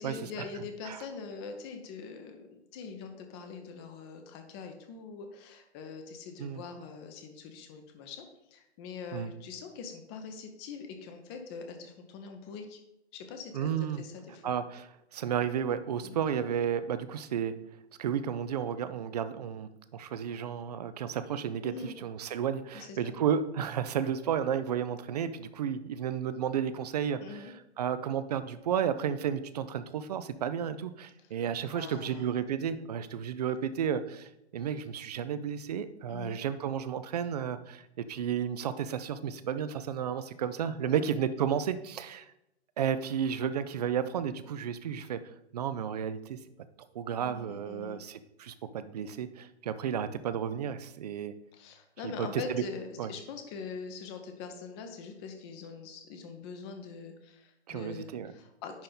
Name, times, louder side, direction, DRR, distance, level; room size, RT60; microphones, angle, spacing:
voice 1, 0.0-8.2 8.5-12.8 13.1-14.5 16.0-16.2 21.6-22.0 22.7-23.1 27.2-27.5 31.7-32.2 36.1-36.4 40.8-41.1 47.2-48.0 51.5-58.8, left 5 dB, 25° left, 5 dB, 0.8 m, -43 dB
voice 2, 13.5-14.0 14.4-17.5 18.0-42.3 42.8-45.2 45.5-46.4 46.9-51.3 52.0-52.6 53.0-53.1 57.7-58.3, right 8 dB, 40° right, 12 dB, 0.5 m, -32 dB
10.5 x 3.8 x 4.0 m, 0.85 s
figure-of-eight pair, 120°, 34 cm